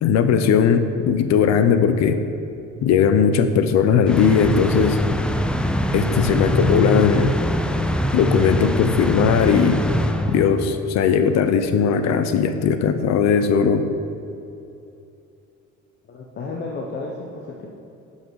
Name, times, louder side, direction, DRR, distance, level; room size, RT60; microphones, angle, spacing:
voice 1, 0.0-2.2 2.8-5.0 5.9-7.3 8.1-9.8 10.3-13.8, left 7 dB, 65° left, 9 dB, 0.6 m, -18 dB
sound 1, 4.1-10.8, left 1 dB, 5° left, 0.3 m, -23 dB
voice 2, 16.1-17.7, left 3 dB, 35° left, -1 dB, 0.8 m, -32 dB
11.0 x 5.7 x 4.7 m, 2.7 s
cardioid pair, 145°, 29 cm